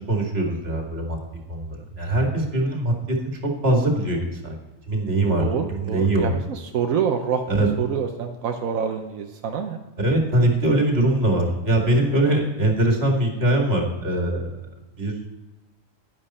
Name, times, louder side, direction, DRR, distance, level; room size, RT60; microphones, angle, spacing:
voice 1, 0.1-1.2 1.5-2.9 3.6-4.6 4.9-6.3 7.5-7.7 10.0-14.5 15.0-15.1, right 1 dB, 50° right, 1 dB, 2.4 m, -22 dB
voice 2, 5.4-9.8 12.3-12.4, right 7 dB, 85° right, 4 dB, 1.2 m, -27 dB
11.0 x 10.5 x 4.3 m, 1.1 s
omnidirectional pair, 1.4 m